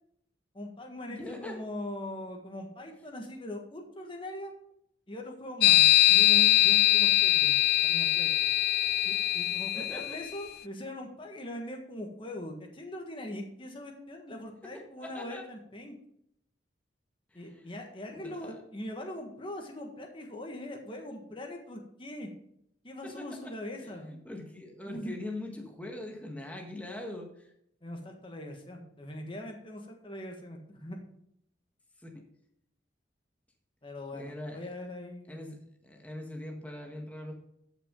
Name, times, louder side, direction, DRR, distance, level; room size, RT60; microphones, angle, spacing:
voice 1, 0.5-4.5 5.1-8.5 9.0-16.0 17.3-22.3 22.8-24.2 24.9-25.1 27.8-31.0 33.8-35.7, left 1 dB, 30° left, 2 dB, 1.6 m, -41 dB
voice 2, 1.1-1.6 9.7-10.2 14.7-15.4 17.3-17.7 18.1-18.6 23.0-23.5 23.8-27.5 32.0-32.2 34.1-34.7 35.3-35.6 35.8-37.3, left 1 dB, 10° left, 1 dB, 1.5 m, -42 dB
sound 1, 5.6-10.3, left 15 dB, 55° left, 0.3 m, -22 dB
13.0 x 6.1 x 3.8 m, 0.75 s
head